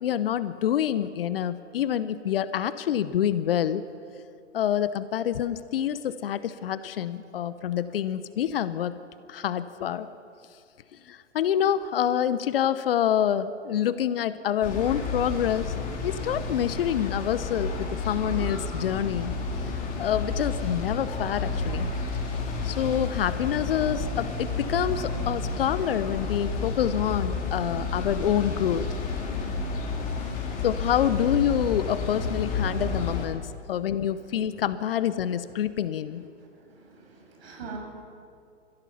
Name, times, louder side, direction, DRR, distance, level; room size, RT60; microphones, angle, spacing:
voice 1, 0.0-3.8 4.5-8.9 9.3-10.1 11.1-15.7 16.0-19.4 19.6-19.7 20.0-21.9 22.6-28.9 30.6-36.3, left 10 dB, 50° left, 14 dB, 0.9 m, -27 dB
sound 1, 14.6-33.3, left 3 dB, 20° left, 3.7 m, -31 dB
voice 2, 36.7-37.8, right 5 dB, 55° right, 1 dB, 6.9 m, -42 dB
29.5 x 16.0 x 5.7 m, 2.3 s
figure-of-eight pair, 120°, 36 cm